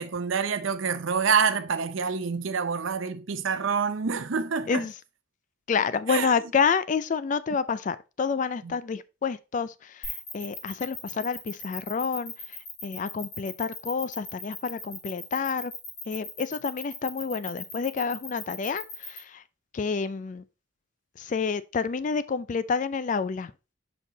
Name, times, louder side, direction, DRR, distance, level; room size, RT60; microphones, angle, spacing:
voice 1, 0.0-4.9 6.1-6.3 8.6-8.8, right 6 dB, 75° right, 0.6 m, -27 dB
voice 2, 5.7-9.7 10.3-12.3 12.8-15.7 16.1-19.4 19.7-20.4 21.2-23.5, left 5 dB, 40° left, 0.3 m, -28 dB
sound 1, 10.0-19.2, left 5 dB, 85° left, 3.6 m, -39 dB
5.4 x 4.6 x 3.9 m
head